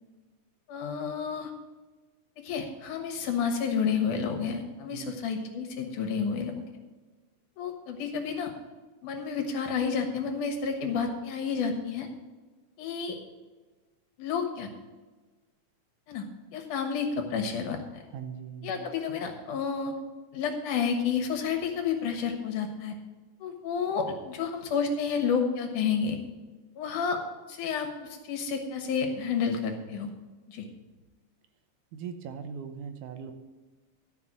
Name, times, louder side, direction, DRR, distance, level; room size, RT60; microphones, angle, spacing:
voice 1, 0.7-1.5 2.4-6.6 7.6-8.5 9.0-12.1 12.8-13.2 14.2-14.7 16.1-16.3 16.5-18.0 18.6-19.9 20.3-23.0 23.4-26.2 26.8-27.2 27.5-30.1 30.5-30.7, left 6 dB, 85° left, 4 dB, 2.9 m, -30 dB
voice 2, 18.1-18.9 31.9-33.3, right 7 dB, 85° right, 7 dB, 2.4 m, -40 dB
12.5 x 5.9 x 7.4 m, 1.3 s
omnidirectional pair, 3.5 m